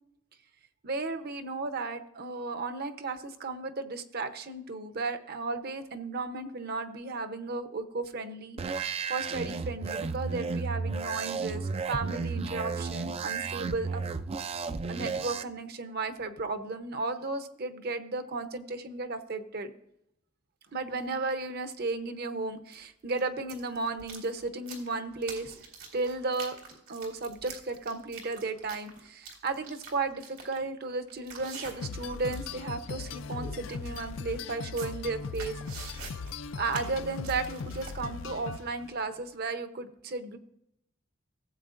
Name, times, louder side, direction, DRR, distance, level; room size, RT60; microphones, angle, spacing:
voice 1, 0.8-8.6 8.8-14.0 14.9-19.7 20.7-25.6 25.9-26.6 26.9-35.6 36.6-40.4, right 3 dB, 50° right, 8 dB, 0.8 m, -34 dB
sound 1, 8.6-15.4, right 4 dB, 30° right, 0.3 m, -33 dB
sound 2, 20.7-20.8 22.7-22.8 23.1-32.0 32.3-32.6 32.9-33.0 33.4-33.5 34.0-34.1 34.5-37.9, right 4 dB, 90° right, 2.2 m, -45 dB
sound 3, 31.8-39.0, left 4 dB, 70° left, 0.4 m, -39 dB
16.5 x 7.9 x 2.5 m, 0.78 s
head